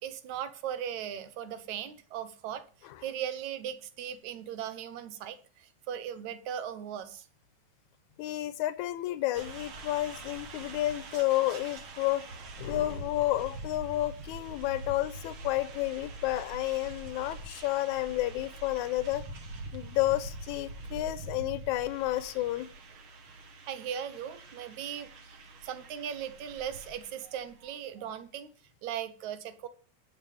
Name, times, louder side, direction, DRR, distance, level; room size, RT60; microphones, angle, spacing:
voice 1, 0.0-7.3 23.7-25.3 25.6-28.5 28.8-29.7, right 9 dB, 75° right, 2.2 m, -38 dB
voice 2, 8.2-12.2 12.6-19.2 19.7-22.7, left 16 dB, 80° left, 2.1 m, -31 dB
sound 1, 9.3-27.7, right 2 dB, 50° right, 2.0 m, -44 dB
20.0 x 6.9 x 3.4 m
omnidirectional pair, 3.4 m